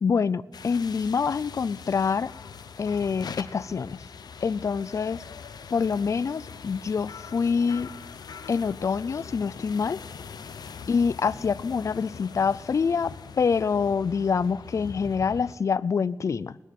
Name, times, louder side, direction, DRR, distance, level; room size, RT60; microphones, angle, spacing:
voice 1, 0.0-2.3 2.8-4.0 4.4-5.2 5.7-7.9 8.5-10.0 10.9-16.6, left 5 dB, 50° left, 19 dB, 0.3 m, -26 dB
sound 1, 0.5-15.5, left 6 dB, 90° left, 0.7 m, -42 dB
19.0 x 6.9 x 7.5 m, 1.1 s
wide cardioid pair, 105°, 7 cm